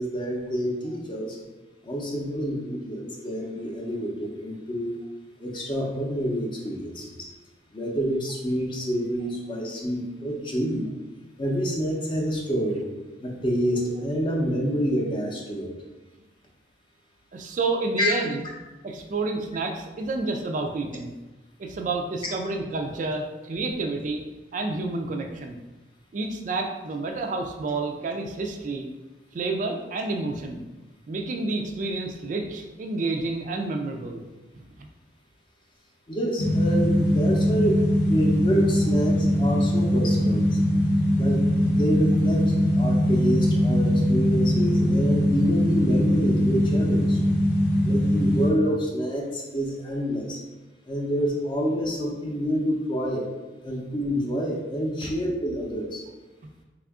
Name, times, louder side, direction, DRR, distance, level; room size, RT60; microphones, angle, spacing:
voice 1, 0.0-1.4 1.8-5.0 5.4-7.3 7.7-10.9 11.4-12.9 13.2-15.7 18.0-18.1 36.1-37.8 38.1-40.6 41.2-47.2 47.8-50.4 50.9-53.3 53.6-56.0, equal, 25° left, -1 dB, 0.6 m, -27 dB
voice 2, 17.3-18.4 18.8-21.1 21.6-24.2 24.5-25.6 26.1-28.9 29.3-30.6 31.1-34.2 34.8-34.9 55.0-55.1, right 3 dB, 45° right, 4 dB, 0.3 m, -29 dB
sound 1, 36.4-48.5, left 1 dB, 60° left, 0.7 m, -21 dB
3.5 x 2.4 x 3.5 m, 1.1 s
head